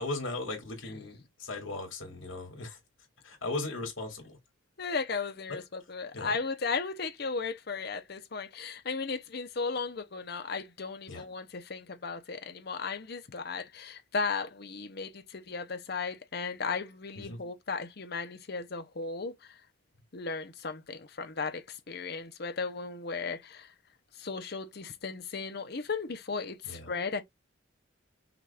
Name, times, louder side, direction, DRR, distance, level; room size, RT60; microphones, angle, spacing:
voice 1, 0.0-2.8 3.2-4.4 5.5-5.6 6.1-6.4 11.1-11.2 17.2-17.4 26.6-26.9, left 2 dB, 85° left, 2.4 m, -37 dB
voice 2, 4.8-19.6 20.1-23.7 24.2-27.2, left 4 dB, 55° left, 0.8 m, -36 dB
5.9 x 2.6 x 3.5 m
head